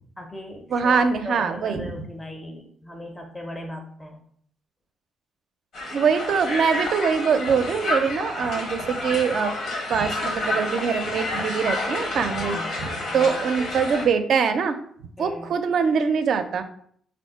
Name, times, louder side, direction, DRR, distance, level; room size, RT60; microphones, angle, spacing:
voice 1, 0.2-4.2 12.4-13.4 15.2-15.6, left 1 dB, 15° left, 4 dB, 0.5 m, -38 dB
voice 2, 0.7-2.1 5.9-9.5 9.9-14.8 15.2-16.6, right 6 dB, 65° right, 8 dB, 0.4 m, -23 dB
Crowd, 5.7-14.1, left 2 dB, 70° left, 1.0 m, -29 dB
3.5 x 2.5 x 4.4 m, 0.62 s
cardioid pair, 90°, 0 cm